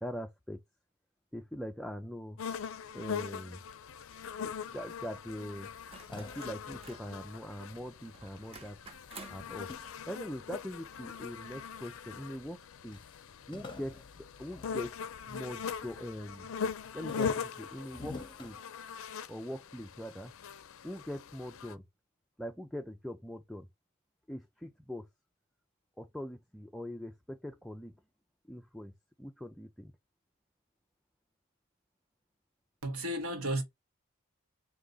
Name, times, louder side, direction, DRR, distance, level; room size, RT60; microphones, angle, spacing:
voice 1, 0.0-0.6 1.3-2.4 2.9-3.6 4.4-5.7 6.1-8.8 9.3-12.6 12.8-13.0 13.5-15.0 15.3-16.5 16.9-18.6 19.3-20.3 20.8-21.9 22.4-23.7 24.3-25.1 26.0-27.9 28.5-29.9, equal, ahead, 0.3 m, -42 dB
sound 1, 2.4-21.7, left 6 dB, 65° left, 0.4 m, -41 dB
sound 2, 5.6-8.2 8.5-11.0 11.6-12.3 12.5-12.6 12.9-15.5 15.9-16.3 16.7-19.3, left 3 dB, 20° left, 0.7 m, -50 dB
sound 3, 5.9-7.2 8.1-9.5 11.1-11.2, right 4 dB, 25° right, 0.7 m, -51 dB
voice 2, 32.8-33.6, right 1 dB, 75° right, 1.2 m, -33 dB
3.8 x 2.7 x 3.7 m
head